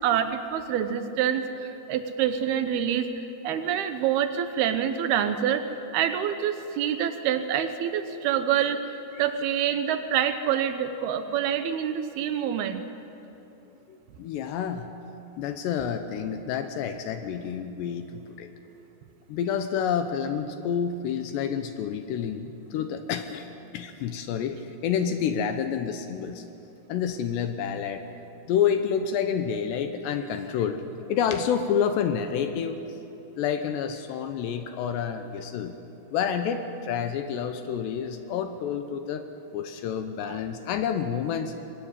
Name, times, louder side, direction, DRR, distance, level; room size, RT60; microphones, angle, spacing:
voice 1, 0.0-5.6 5.9-12.8 40.2-40.4, right 9 dB, 80° right, 9 dB, 2.3 m, -26 dB
voice 2, 13.9-14.9 15.4-18.5 19.3-23.5 23.7-26.4 26.9-28.0 28.5-30.8 31.1-32.8 33.4-35.8 36.1-39.2 39.5-41.5, left 8 dB, 75° left, 8 dB, 2.8 m, -29 dB
23.0 x 18.5 x 9.9 m, 3.0 s
omnidirectional pair, 5.7 m